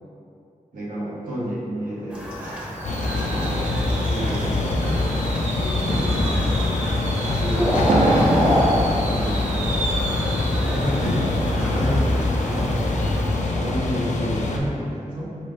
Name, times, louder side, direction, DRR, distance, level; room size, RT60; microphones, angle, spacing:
voice 1, 0.7-5.1 5.5-6.8 7.2-8.4 9.1-9.6 10.2-12.7 13.2-15.4, equal, 85° right, -7 dB, 1.1 m, -31 dB
Fireworks, 1.8-13.5 13.8-14.1 14.4-14.5, right 2 dB, 60° right, 0.5 m, -30 dB
sound 1, 2.1-13.4, equal, 10° right, 0.7 m, -28 dB
sound 2, 2.8-14.6, left 2 dB, 65° left, 0.4 m, -24 dB
5.5 x 2.4 x 3.4 m, 2.5 s
wide cardioid pair, 135°, 14 cm